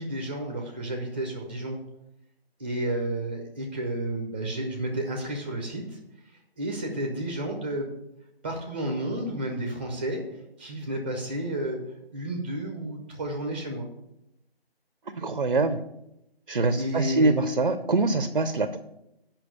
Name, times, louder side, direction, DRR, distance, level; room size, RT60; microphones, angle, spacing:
voice 1, 0.0-1.8 2.6-5.8 6.6-7.9 8.4-10.2 10.6-11.8 12.1-13.9 16.8-17.4, right 1 dB, 10° right, 2 dB, 0.8 m, -31 dB
voice 2, 15.1-15.8 16.5-18.8, right 3 dB, 50° right, 11 dB, 0.6 m, -24 dB
8.6 x 5.9 x 6.9 m, 0.85 s
figure-of-eight pair, 155°, 31 cm